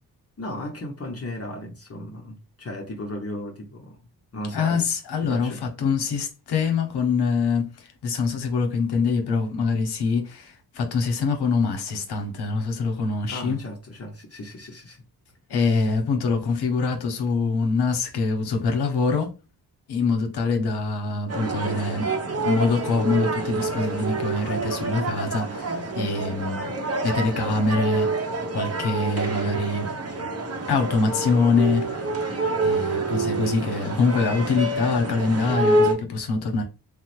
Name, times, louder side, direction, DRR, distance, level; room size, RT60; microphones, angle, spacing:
voice 1, 0.4-4.0 4.3-4.9 5.2-5.6 13.3-15.0, left 1 dB, 35° left, 0.7 m, -35 dB
voice 2, 4.5-5.5 5.8-13.6 15.5-19.3 19.9-22.1 22.4-26.8 27.0-28.2 28.5-29.9 30.7-31.9 32.6-36.6, left 4 dB, 80° left, 0.9 m, -24 dB
sound 1, 21.3-35.9, right 2 dB, 40° right, 0.7 m, -27 dB
3.2 x 2.0 x 3.1 m
cardioid pair, 75°, 39 cm